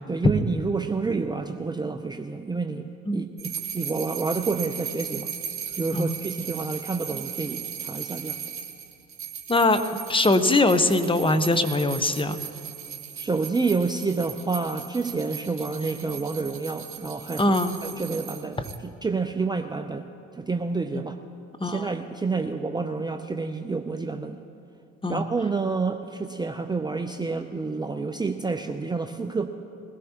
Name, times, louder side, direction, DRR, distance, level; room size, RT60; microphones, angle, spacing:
voice 1, 0.1-5.3 5.7-8.4 13.2-17.6 17.8-18.6 19.0-20.1 20.4-21.2 21.6-24.4 25.1-29.5, right 4 dB, 15° right, 6 dB, 0.6 m, -29 dB
sound 1, 3.4-18.8, right 8 dB, 40° right, 1.8 m, -37 dB
voice 2, 9.5-9.8 10.1-12.4 17.4-17.8 21.6-21.9 25.0-25.2, left 2 dB, 15° left, 9 dB, 1.0 m, -22 dB
21.5 x 16.5 x 3.0 m, 2.6 s
hypercardioid pair, 60°, 33 cm